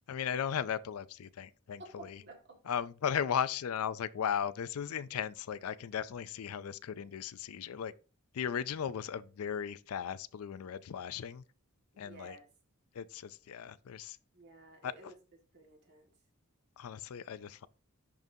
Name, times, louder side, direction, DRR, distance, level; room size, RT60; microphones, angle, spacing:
voice 1, 0.1-2.2 2.7-7.9 8.3-11.4 12.0-12.4 12.9-14.2 14.8-15.1 16.8-17.7, left 8 dB, 75° left, 0.4 m, -36 dB
voice 2, 1.8-2.6 11.9-12.5 14.3-15.1 15.5-16.1, right 2 dB, 50° right, 1.8 m, -53 dB
10.5 x 3.8 x 2.7 m
head